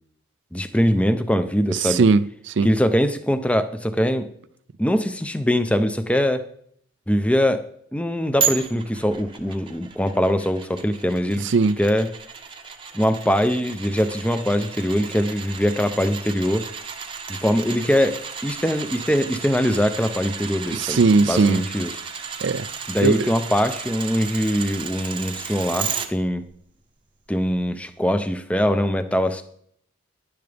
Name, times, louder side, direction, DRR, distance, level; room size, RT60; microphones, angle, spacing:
voice 1, 0.5-2.0 2.6-4.3 4.8-6.4 7.1-7.7 7.9-11.5 11.8-12.1 12.9-16.7 17.3-22.0 22.9-26.5 27.3-29.4, equal, 5° left, 0.6 m, -22 dB
voice 2, 1.7-2.7 11.4-11.8 20.7-21.6 22.4-22.7 23.0-23.3, right 4 dB, 55° right, 0.4 m, -19 dB
sound 1, 8.4-26.1 26.5-26.6, right 7 dB, 25° right, 0.8 m, -33 dB
10.5 x 10.5 x 3.4 m
head